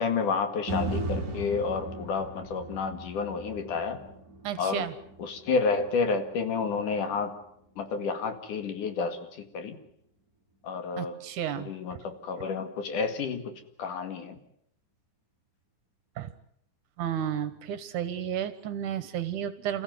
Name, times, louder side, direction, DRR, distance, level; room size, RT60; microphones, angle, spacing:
voice 1, 0.0-4.0 4.6-4.9 5.2-7.3 7.8-9.8 10.6-11.2 11.6-13.5 13.8-14.4, left 5 dB, 70° left, 8 dB, 3.6 m, -30 dB
sound 1, 0.7-8.8 9.3-9.4, right 1 dB, 30° right, 2.8 m, -38 dB
voice 2, 4.4-4.9 11.0-11.7 16.2-16.3 17.0-19.8, right 9 dB, 70° right, 13 dB, 2.7 m, -32 dB
29.0 x 15.0 x 9.5 m, 0.72 s
omnidirectional pair, 3.9 m